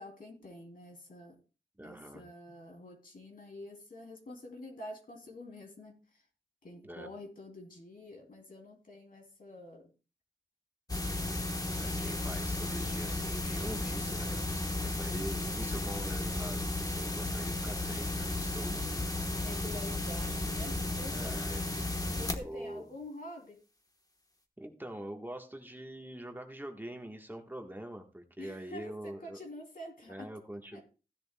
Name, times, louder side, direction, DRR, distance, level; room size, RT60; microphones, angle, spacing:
voice 1, 0.0-1.4 1.8-5.9 6.6-9.9 19.3-21.4 22.1-23.6 28.4-30.3 30.7-30.8, left 1 dB, 70° left, 2 dB, 2.9 m, -47 dB
voice 2, 1.8-2.2 6.8-7.1 11.8-18.8 21.1-21.7 22.4-22.9 24.6-29.4 30.1-30.8, right 1 dB, 15° right, 3 dB, 1.3 m, -44 dB
sound 1, 10.9-22.4, left 2 dB, 25° left, 1.1 m, -34 dB
15.5 x 10.5 x 2.2 m, 0.33 s
wide cardioid pair, 105°, 15 cm